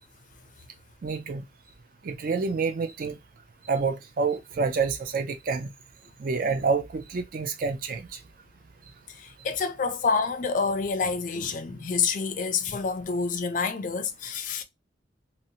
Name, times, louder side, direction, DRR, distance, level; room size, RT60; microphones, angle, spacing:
voice 1, 1.0-1.4 2.0-3.2 3.6-5.7 6.2-8.2, right 4 dB, 50° right, 0.4 m, -28 dB
voice 2, 9.1-14.6, left 5 dB, 45° left, 0.4 m, -28 dB
2.7 x 2.1 x 2.7 m
head